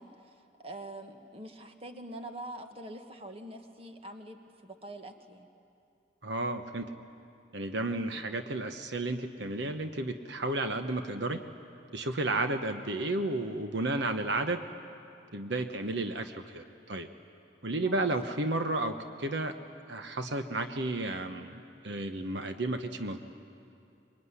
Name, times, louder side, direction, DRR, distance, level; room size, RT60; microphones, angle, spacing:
voice 1, 0.0-5.5 17.9-18.0, right 1 dB, 30° right, 5 dB, 1.6 m, -45 dB
voice 2, 6.2-6.9 7.5-11.4 11.9-14.6 15.3-17.1 17.6-19.5 19.9-23.2, right 2 dB, 70° right, 7 dB, 1.1 m, -32 dB
25.5 x 23.0 x 9.8 m, 2.6 s
head